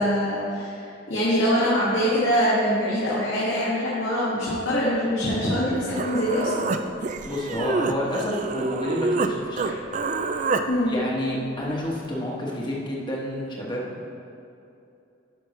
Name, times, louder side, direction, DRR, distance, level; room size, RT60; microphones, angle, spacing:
voice 1, 0.0-6.7 10.7-11.0, equal, 85° left, -8 dB, 1.7 m, -24 dB
Human voice, 5.6-5.7 6.0-9.3 9.6-10.6, right 3 dB, 40° right, 0.4 m, -27 dB
voice 2, 7.2-9.8 10.9-13.9, equal, 25° left, -4 dB, 1.3 m, -29 dB
11.5 x 6.1 x 3.2 m, 2.7 s
head